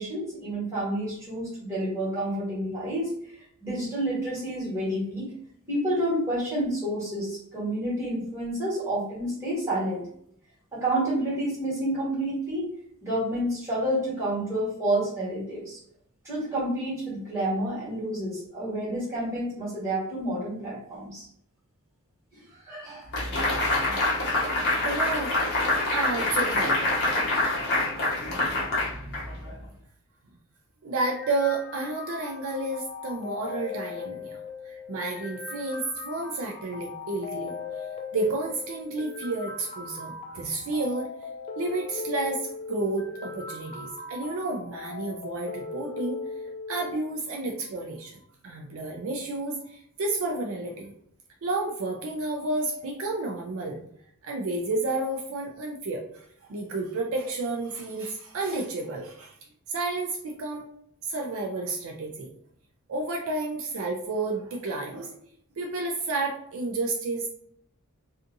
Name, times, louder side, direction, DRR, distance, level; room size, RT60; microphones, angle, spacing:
voice 1, 0.0-5.3 5.7-10.0 10.7-12.7 13.0-15.8 16.2-21.3 22.5-23.1, right 1 dB, 15° right, -8 dB, 1.4 m, -29 dB
sound 1, 23.1-29.6, left 2 dB, 50° left, 0.8 m, -26 dB
voice 2, 24.8-25.3 25.9-26.8 30.8-34.4 34.6-37.9 38.1-41.1 41.6-46.2 46.7-50.9 51.4-53.8 54.2-59.4 59.7-60.7 61.0-62.3 62.9-65.2 65.6-67.3, right 2 dB, 65° right, 1 dB, 0.4 m, -31 dB
sound 2, 31.0-47.0, left 4 dB, 25° left, 0.3 m, -39 dB
2.6 x 2.4 x 2.6 m, 0.68 s
head